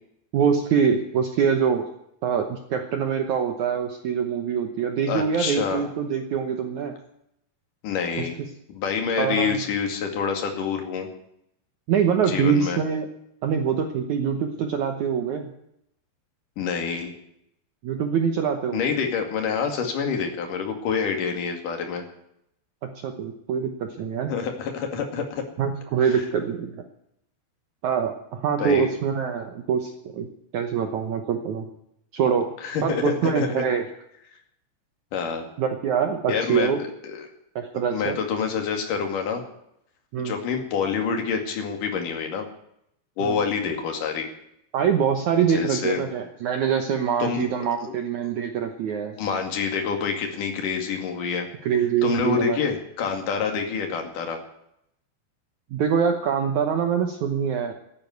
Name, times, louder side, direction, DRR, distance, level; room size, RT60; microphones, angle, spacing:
voice 1, 0.3-1.9 2.2-6.9 8.2-8.3 9.2-9.6 11.9-13.1 13.4-15.5 17.8-18.8 22.8-24.3 25.6-26.8 27.8-31.7 32.1-32.5 32.8-33.8 35.6-36.8 37.6-38.2 40.1-40.3 43.2-43.4 44.7-49.2 51.6-52.6 55.7-57.8, right 7 dB, 70° right, 5 dB, 1.9 m, -24 dB
voice 2, 5.1-5.8 7.8-8.4 8.7-11.1 12.3-12.8 16.6-17.1 18.7-22.1 24.3-25.4 26.1-26.2 28.6-28.9 32.6-33.6 35.1-35.5 36.3-37.3 37.9-39.4 40.2-42.5 43.2-44.3 45.5-46.0 47.2-47.4 47.8-47.9 49.2-51.5 52.0-54.4, left 6 dB, 55° left, 3 dB, 3.7 m, -27 dB
14.0 x 10.5 x 9.5 m, 0.77 s
omnidirectional pair, 4.6 m